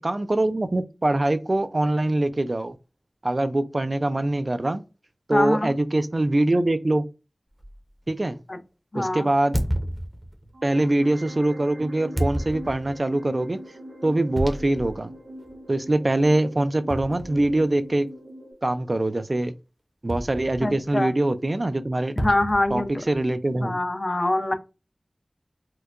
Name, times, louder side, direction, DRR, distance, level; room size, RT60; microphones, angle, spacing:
voice 1, 0.0-2.8 3.2-4.8 5.3-7.1 8.1-8.4 8.9-9.6 10.6-13.6 14.0-15.1 15.7-18.1 18.6-19.5 20.0-22.2 22.7-23.8, right 1 dB, 45° right, 0.4 m, -23 dB
voice 2, 5.3-5.7 8.5-8.6 8.9-9.3 20.6-21.1 22.2-22.9 23.6-24.5, left 1 dB, 45° left, 0.5 m, -24 dB
sound 1, 7.6-7.8 9.5-10.6 12.2-13.0 14.4-15.0 15.4-15.5 16.9-17.8 20.1-20.9 22.2-23.3, equal, 15° right, 0.7 m, -30 dB
sound 2, 10.5-18.5, equal, 85° right, 0.9 m, -42 dB
4.4 x 2.2 x 2.4 m
wide cardioid pair, 65°, 0 cm